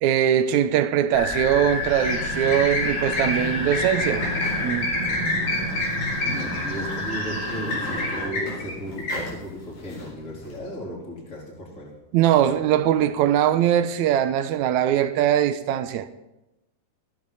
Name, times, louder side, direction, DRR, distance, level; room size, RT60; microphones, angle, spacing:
voice 1, 0.0-4.2 4.6-4.9 12.1-16.1, right 10 dB, 75° right, 2.0 m, -21 dB
sound 1, 1.1-8.3, left 2 dB, 55° left, 5.6 m, -30 dB
sound 2, 1.2-10.5, left 1 dB, 80° left, 6.0 m, -29 dB
voice 2, 6.2-11.9, equal, 25° left, 4.1 m, -35 dB
15.5 x 15.0 x 4.1 m
omnidirectional pair, 3.6 m